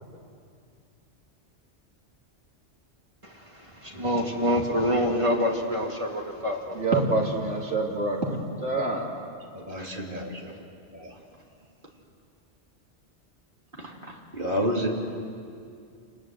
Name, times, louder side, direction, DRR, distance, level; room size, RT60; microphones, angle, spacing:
voice 1, 3.2-6.9, equal, 25° right, 0 dB, 2.4 m, -27 dB
voice 2, 6.7-9.1, right 2 dB, 90° right, -1 dB, 3.3 m, -26 dB
voice 3, 9.5-10.6 10.9-11.2 13.8-14.9, equal, 45° right, -1 dB, 3.2 m, -31 dB
28.5 x 20.5 x 7.9 m, 2.4 s
omnidirectional pair, 1.2 m